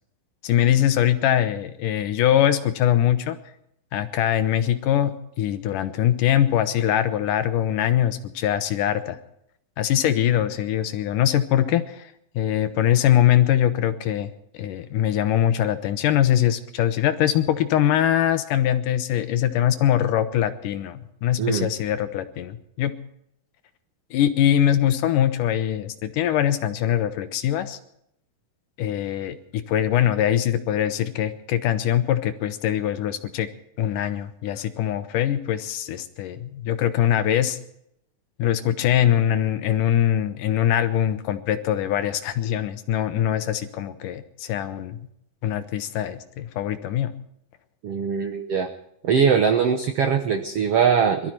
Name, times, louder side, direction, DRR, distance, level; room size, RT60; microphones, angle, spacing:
voice 1, 0.4-3.4 3.9-9.2 9.8-14.3 14.6-22.9 24.1-27.8 28.8-33.5 33.8-37.6 38.4-45.0 45.4-47.1, left 11 dB, 75° left, 11 dB, 2.2 m, -22 dB
voice 2, 21.4-21.7 47.8-48.7 49.0-51.3, right 6 dB, 85° right, 7 dB, 1.3 m, -21 dB
22.5 x 13.5 x 4.5 m, 0.75 s
omnidirectional pair, 4.2 m